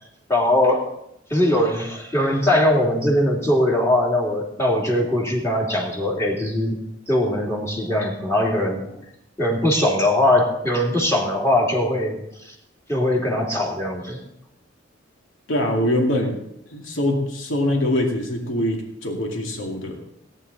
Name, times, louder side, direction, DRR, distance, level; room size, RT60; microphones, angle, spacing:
voice 1, 0.3-1.0 1.3-6.8 7.1-9.0 9.4-12.5 12.9-14.2, left 1 dB, 15° left, -2 dB, 2.8 m, -21 dB
voice 2, 15.5-16.4 16.7-20.0, left 1 dB, 80° left, 1 dB, 2.4 m, -23 dB
18.5 x 9.9 x 4.1 m, 0.78 s
head